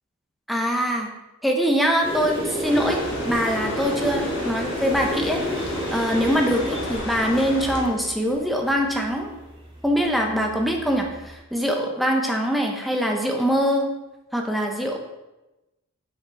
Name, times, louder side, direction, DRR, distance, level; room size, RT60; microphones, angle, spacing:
voice 1, 0.5-1.1 1.4-5.4 5.9-9.3 9.8-13.9 14.3-15.0, equal, ahead, 1 dB, 0.6 m, -23 dB
sound 1, 2.0-11.4, equal, 25° right, 1.3 m, -32 dB
sound 2, 2.6-7.8, left 1 dB, 55° left, 1.2 m, -33 dB
5.9 x 5.3 x 4.1 m, 1.0 s
head